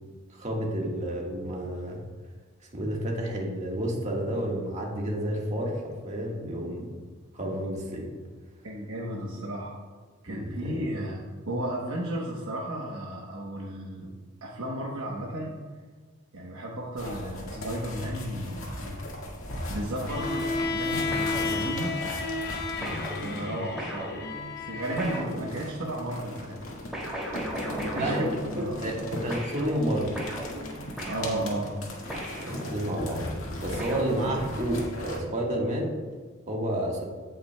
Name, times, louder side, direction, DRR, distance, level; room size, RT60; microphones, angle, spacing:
voice 1, 0.3-2.0 2.7-6.9 7.3-8.1 10.3-11.0 28.0-28.2 28.6-30.3 32.4-33.3 33.6-36.0 36.5-37.1, right 1 dB, 35° right, -1 dB, 1.5 m, -30 dB
voice 2, 8.6-9.8 10.2-14.1 14.4-15.5 16.3-19.0 19.7-21.9 22.7-24.1 24.6-26.6 27.7-28.8 31.0-31.8, right 1 dB, 70° right, -3 dB, 1.0 m, -34 dB
sound 1, 17.0-23.5 24.8-35.2, left 1 dB, 85° left, 1.9 m, -38 dB
Bowed string instrument, 20.1-25.3, left 3 dB, 55° left, 0.8 m, -32 dB
sound 2, 21.1-22.1 22.8-26.0 26.9-29.0 29.3-33.1 33.8-34.8, equal, ahead, 2.4 m, -38 dB
16.0 x 5.8 x 2.2 m, 1.5 s
head